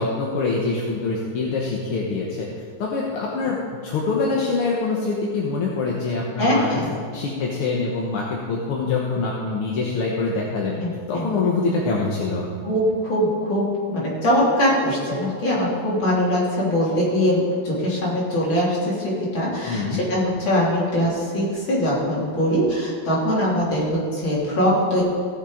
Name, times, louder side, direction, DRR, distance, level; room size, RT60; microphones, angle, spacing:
voice 1, 0.0-2.5 2.8-6.8 7.1-10.8 11.1-12.5 19.6-20.0, left 3 dB, 80° left, -3 dB, 2.1 m, -24 dB
voice 2, 6.4-6.9 10.8-11.3 12.6-25.0, equal, 60° left, -6 dB, 4.1 m, -22 dB
16.0 x 7.4 x 5.1 m, 2.2 s
omnidirectional pair, 2.4 m